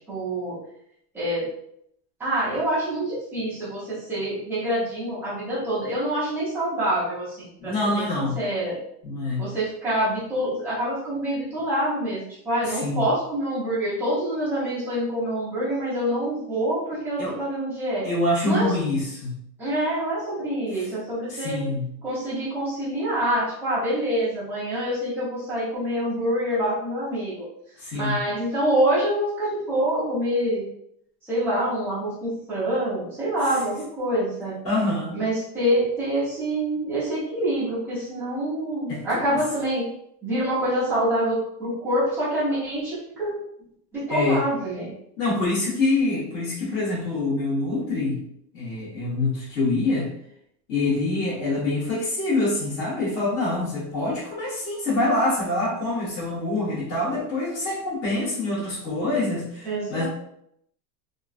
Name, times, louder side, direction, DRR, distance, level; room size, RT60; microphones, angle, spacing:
voice 1, 0.1-0.6 1.1-1.5 2.2-8.8 9.4-18.1 18.5-18.7 19.6-21.6 22.0-27.5 27.9-30.7 31.3-34.6 35.1-39.9 40.2-43.4 43.9-44.9 59.6-60.0, right 1 dB, 5° right, -12 dB, 0.4 m, -26 dB
voice 2, 7.6-8.4 9.0-9.4 12.6-13.0 17.2-17.4 18.0-19.3 20.7-20.9 21.3-21.9 27.8-28.2 33.4-33.5 34.6-35.2 38.9-39.4 44.1-44.4 45.2-48.2 48.5-50.1 50.7-60.0, left 2 dB, 45° left, -11 dB, 1.4 m, -25 dB
2.8 x 2.3 x 2.5 m, 0.73 s
supercardioid pair, 170°, 50 cm